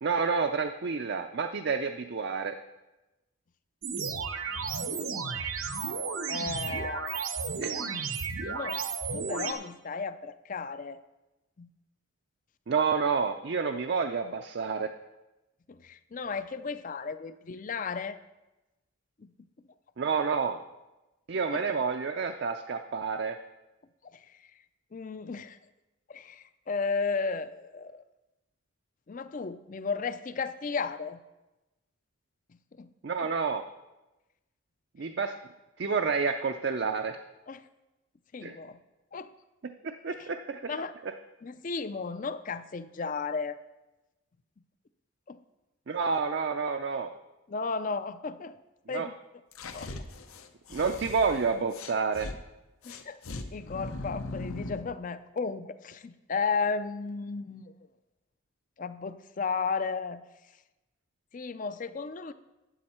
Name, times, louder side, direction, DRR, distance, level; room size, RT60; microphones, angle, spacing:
voice 1, 0.0-2.6 7.6-7.8 12.7-14.9 20.0-20.6 21.3-23.4 33.0-33.6 35.0-35.3 35.8-37.2 38.4-38.6 39.6-40.7 45.9-47.1 48.9-49.1 50.7-52.3, right 5 dB, 50° right, 6 dB, 0.4 m, -29 dB
sound 1, 3.8-9.5, right 5 dB, 75° right, 0.9 m, -33 dB
voice 2, 4.9-5.7 6.3-7.2 8.4-8.9 9.1-11.0 11.6-11.7 15.7-18.2 19.2-19.3 21.5-21.6 24.1-24.2 24.9-25.6 26.1-28.0 29.1-31.2 32.8-32.9 33.2-33.3 37.5-37.6 38.3-38.8 39.1-39.3 40.2-40.3 40.7-40.9 41.4-43.6 45.3-45.4 47.5-48.6 48.9-49.1 49.6-49.9 52.8-53.2 53.5-57.7 58.8-60.2 61.3-62.3, left 4 dB, 40° left, 14 dB, 0.4 m, -34 dB
sound 2, 49.5-52.4 52.8-54.9, left 2 dB, 80° left, 0.8 m, -40 dB
12.0 x 8.6 x 4.3 m, 1.0 s
head